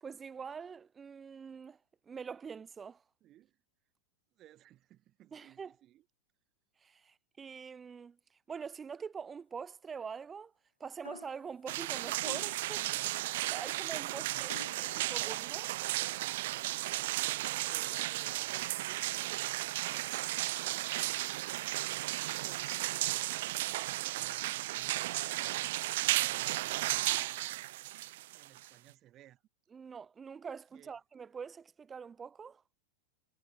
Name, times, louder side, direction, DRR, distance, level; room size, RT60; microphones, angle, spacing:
voice 1, 0.0-1.8 2.1-3.0 5.3-5.7 6.8-8.2 8.5-10.5 10.8-12.9 13.5-14.5 14.8-15.7 29.7-32.6, right 6 dB, 20° right, 0.7 m, -44 dB
voice 2, 3.2-3.6 4.3-6.0 12.9-13.6 14.0-15.3 17.7-19.6 19.9-20.2 20.6-27.5 28.3-29.4 30.7-31.0, right 13 dB, 35° right, 3.5 m, -60 dB
sound 1, 11.0-11.5 12.2-12.7 14.5-14.9, left 4 dB, 75° left, 0.6 m, -48 dB
sound 2, 11.7-28.9, right 17 dB, 55° right, 0.4 m, -34 dB
figure-of-eight pair, 90°, 0 cm